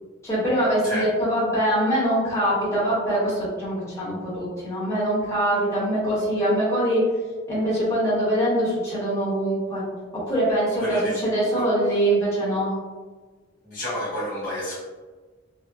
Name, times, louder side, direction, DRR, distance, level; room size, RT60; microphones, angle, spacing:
voice 1, 0.2-7.0 7.5-9.8 10.3-12.7, right 1 dB, 15° left, -9 dB, 0.9 m, -23 dB
voice 2, 10.8-11.2 11.6-11.7 13.6-14.8, equal, 45° left, -9 dB, 1.1 m, -30 dB
2.7 x 2.0 x 2.3 m, 1.3 s
head